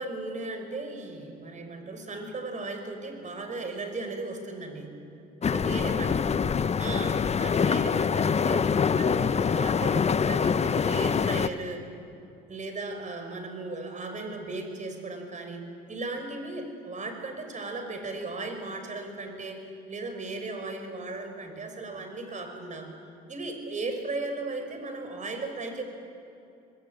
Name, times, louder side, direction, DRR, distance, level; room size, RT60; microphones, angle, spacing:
voice 1, 0.0-5.0 5.5-6.2 6.8-11.9 12.5-22.9 23.3-25.8, right 3 dB, 35° right, 5 dB, 5.5 m, -36 dB
sound 1, 5.4-11.5, left 6 dB, 30° left, 0.8 m, -25 dB
25.0 x 20.0 x 8.9 m, 2.8 s
supercardioid pair, 75°, 21 cm